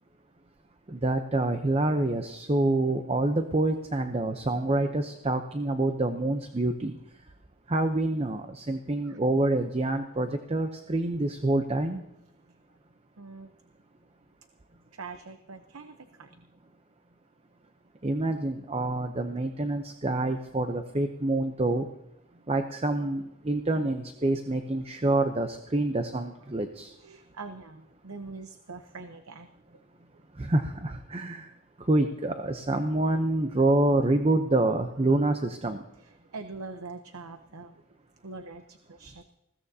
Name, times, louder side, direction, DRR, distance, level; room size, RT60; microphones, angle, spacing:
voice 1, 0.9-7.0 7.7-12.0 18.0-21.9 22.5-26.9 30.4-31.5 31.9-35.8, right 2 dB, 25° right, 7 dB, 0.7 m, -27 dB
voice 2, 13.2-13.5 14.9-16.4 27.0-29.5 35.1-35.2 36.0-37.8 38.2-39.2, right 3 dB, 75° right, 8 dB, 0.9 m, -43 dB
20.5 x 16.0 x 2.8 m, 0.89 s
head